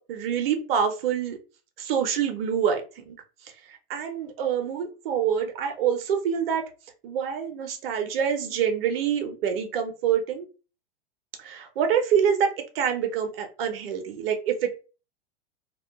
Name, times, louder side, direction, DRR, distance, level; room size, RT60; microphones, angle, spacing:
voice 1, 0.0-1.4 1.8-3.2 3.4-6.7 7.0-10.5 11.4-14.7, right 8 dB, 70° right, 5 dB, 0.7 m, -26 dB
2.4 x 2.2 x 2.3 m, 0.33 s
hypercardioid pair, 115°, 30 cm